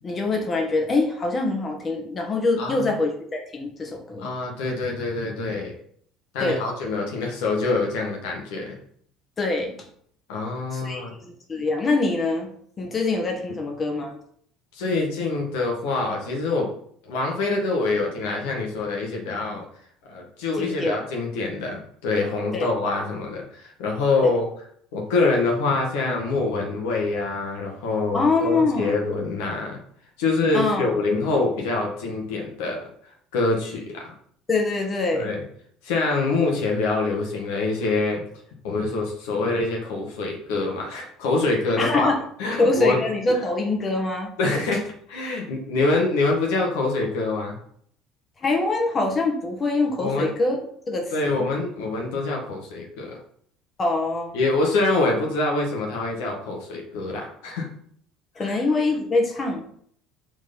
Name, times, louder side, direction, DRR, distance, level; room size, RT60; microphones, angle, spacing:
voice 1, 0.0-4.3 6.4-6.6 9.4-9.7 10.7-12.5 12.8-14.1 20.6-21.0 22.5-22.7 24.2-24.3 28.1-29.0 30.5-30.9 34.5-35.3 41.8-42.2 42.6-44.3 48.4-50.6 50.9-51.5 53.8-54.4 58.4-59.6, left 3 dB, 30° left, 2 dB, 1.8 m, -24 dB
voice 2, 2.6-2.9 4.2-5.7 6.3-8.8 10.3-11.1 14.7-16.7 17.1-19.7 20.1-24.5 24.9-29.8 30.2-32.8 33.3-34.1 35.1-35.4 35.8-38.2 38.6-42.1 42.4-43.0 44.4-47.6 50.0-50.3 51.1-53.2 54.3-57.7 58.4-58.6, left 3 dB, 65° left, 0 dB, 1.7 m, -25 dB
6.0 x 4.5 x 5.5 m, 0.63 s
figure-of-eight pair, 60°, 0 cm